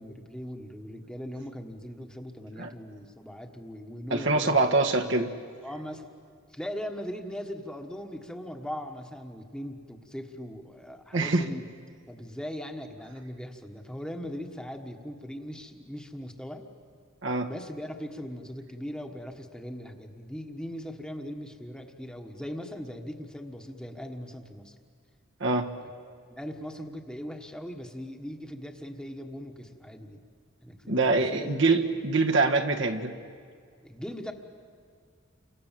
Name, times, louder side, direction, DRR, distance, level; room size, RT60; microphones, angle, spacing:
voice 1, 0.0-4.6 5.6-6.1 6.5-11.6 12.1-16.6 17.5-24.7 26.3-30.2 30.6-31.6 33.8-34.3, equal, 5° left, 4 dB, 1.5 m, -39 dB
voice 2, 4.1-5.3 11.1-11.5 17.2-17.5 25.4-25.7 30.9-33.1, right 3 dB, 60° right, 3 dB, 1.5 m, -24 dB
29.5 x 25.0 x 7.6 m, 2.1 s
head